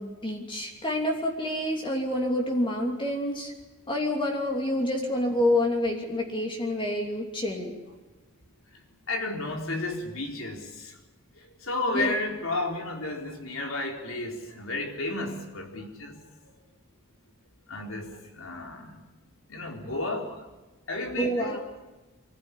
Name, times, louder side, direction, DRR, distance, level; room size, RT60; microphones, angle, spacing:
voice 1, 0.0-3.5 3.9-7.8 11.9-12.1 21.2-21.6, left 1 dB, 25° left, 1 dB, 2.9 m, -28 dB
voice 2, 9.1-10.9 11.6-16.2 17.7-18.1 18.3-19.0 19.5-20.3 20.9-21.6, left 2 dB, 70° left, 2 dB, 4.2 m, -32 dB
25.5 x 15.0 x 10.0 m, 1.2 s
head